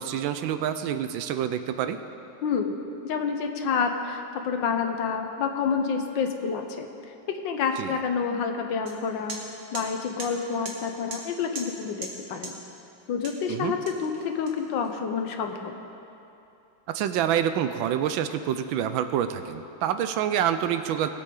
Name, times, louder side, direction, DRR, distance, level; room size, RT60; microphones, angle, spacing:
voice 1, 0.0-2.0 7.8-8.0 13.5-13.7 16.9-21.1, right 9 dB, 85° right, 10 dB, 1.4 m, -27 dB
voice 2, 2.4-2.7 3.0-7.1 7.4-9.4 9.7-12.6 13.1-15.7, left 6 dB, 70° left, 5 dB, 1.5 m, -28 dB
sound 1, 8.9-9.0 9.3-9.4 9.7-9.9 10.2-10.3 10.7-10.8 11.1-11.2 11.6-11.7 12.0-12.1 12.4-12.5 13.2-13.4 13.9-14.9, right 3 dB, 55° right, 1.7 m, -37 dB
20.0 x 8.5 x 3.8 m, 2.8 s
omnidirectional pair, 2.1 m